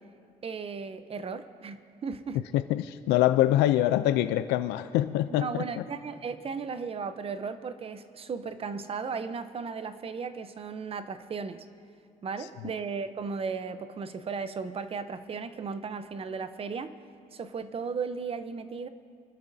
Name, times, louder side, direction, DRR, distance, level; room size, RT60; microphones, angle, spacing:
voice 1, 0.4-2.4 5.4-11.7 12.2-17.0 17.3-18.9, right 5 dB, 35° right, 11 dB, 0.7 m, -36 dB
voice 2, 2.5-5.6, left 13 dB, 85° left, 11 dB, 0.5 m, -24 dB
25.0 x 12.5 x 2.7 m, 2.5 s
cardioid pair, 110°, 17 cm